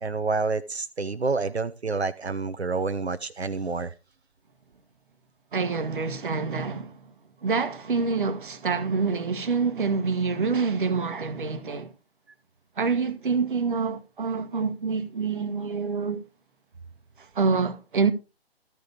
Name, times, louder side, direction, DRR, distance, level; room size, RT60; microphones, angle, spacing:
voice 1, 0.0-3.9, right 4 dB, 85° right, 0.8 m, -28 dB
voice 2, 5.5-7.1 7.4-11.9 12.8-16.2 17.2-18.1, right 5 dB, 55° right, 1.4 m, -26 dB
14.0 x 5.2 x 4.4 m
figure-of-eight pair, 145°, 31 cm